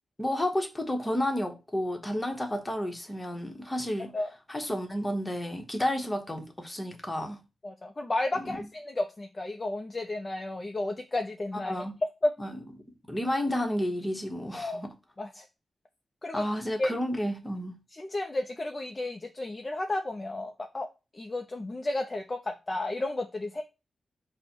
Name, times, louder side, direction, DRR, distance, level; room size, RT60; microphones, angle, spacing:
voice 1, 0.2-4.1 4.5-7.4 8.4-8.7 11.7-12.0 12.4-12.5 13.1-14.9 16.3-17.8, left 1 dB, 15° left, 0.9 m, -31 dB
voice 2, 7.6-11.7 12.2-12.3 14.5-14.8 15.2-15.4 16.2-16.4 16.8-16.9 17.9-20.9 21.1-23.6, left 2 dB, 30° left, 0.4 m, -32 dB
5.2 x 2.1 x 4.4 m
wide cardioid pair, 100°, 0 cm